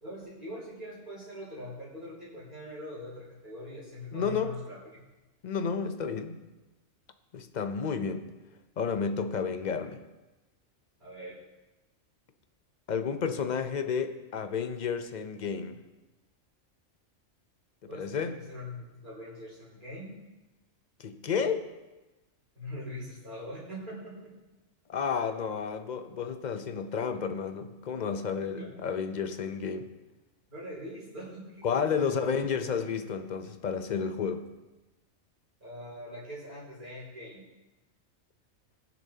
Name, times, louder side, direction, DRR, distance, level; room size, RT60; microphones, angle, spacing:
voice 1, 0.0-5.0 11.0-11.4 17.9-20.2 22.5-24.4 28.5-28.8 30.5-32.3 35.6-37.4, left 1 dB, 40° right, -8 dB, 2.8 m, -42 dB
voice 2, 4.1-4.5 5.4-6.4 7.3-8.3 8.8-10.0 12.9-15.8 18.0-18.3 21.0-21.6 24.9-29.9 31.6-34.4, left 6 dB, 45° left, 8 dB, 0.6 m, -31 dB
19.5 x 6.9 x 2.8 m, 1.1 s
omnidirectional pair, 1.4 m